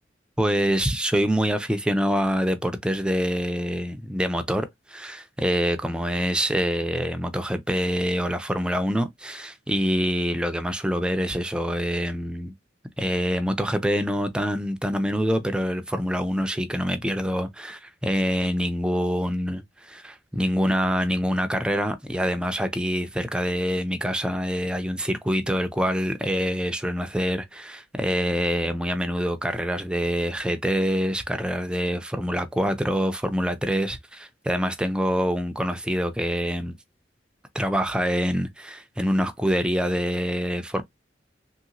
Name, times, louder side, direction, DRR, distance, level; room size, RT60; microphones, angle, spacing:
voice 1, 0.4-12.5 13.0-36.7 37.5-40.8, equal, 5° right, 0.4 m, -25 dB
3.1 x 2.8 x 2.5 m
head